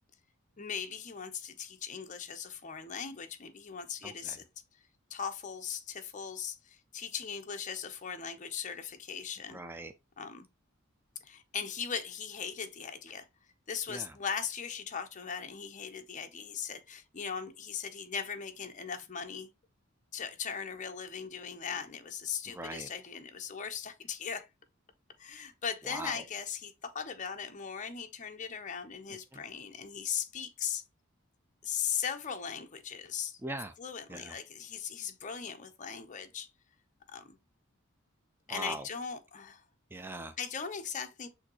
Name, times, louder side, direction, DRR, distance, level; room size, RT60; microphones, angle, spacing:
voice 1, 0.6-4.4 5.1-9.6 10.2-10.5 11.2-13.3 13.7-19.5 20.1-24.5 25.2-30.8 31.6-33.4 33.8-36.5 37.1-37.4 38.5-39.6 40.4-41.3, left 7 dB, 35° left, 0.6 m, -39 dB
voice 2, 4.0-4.4 9.5-9.9 13.9-14.1 22.5-22.9 25.9-26.2 33.4-33.7 34.1-34.3 38.5-38.9 39.9-40.3, right 2 dB, 10° right, 0.4 m, -41 dB
6.3 x 2.7 x 2.9 m
head